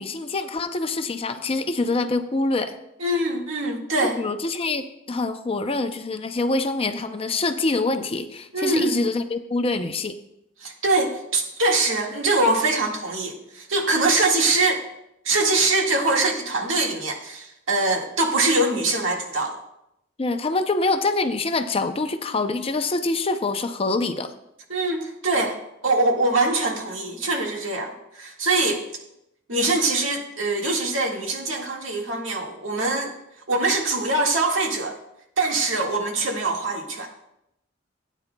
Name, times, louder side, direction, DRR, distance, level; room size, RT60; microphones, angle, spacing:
voice 1, 0.0-2.8 4.0-10.2 20.2-24.3, left 3 dB, 30° left, 8 dB, 0.5 m, -25 dB
voice 2, 3.0-4.2 8.5-8.9 10.6-14.8 15.2-19.6 24.7-25.6 25.8-28.9 29.5-33.1 33.5-35.0 35.4-37.1, right 2 dB, 80° right, 0 dB, 1.8 m, -23 dB
16.5 x 9.2 x 2.3 m, 0.82 s
head